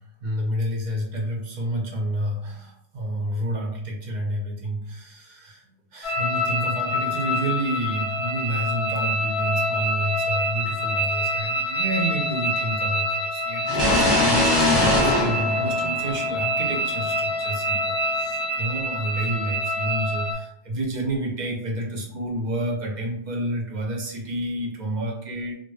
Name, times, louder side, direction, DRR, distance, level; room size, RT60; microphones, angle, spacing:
voice 1, 0.2-5.6 5.9-25.5, right 1 dB, 60° right, 0 dB, 0.5 m, -29 dB
sound 1, 6.0-20.3, equal, 65° left, 0.7 m, -26 dB
sound 2, 13.7-16.5, left 1 dB, 25° left, 0.8 m, -21 dB
2.4 x 2.1 x 3.1 m, 0.71 s
omnidirectional pair, 1.2 m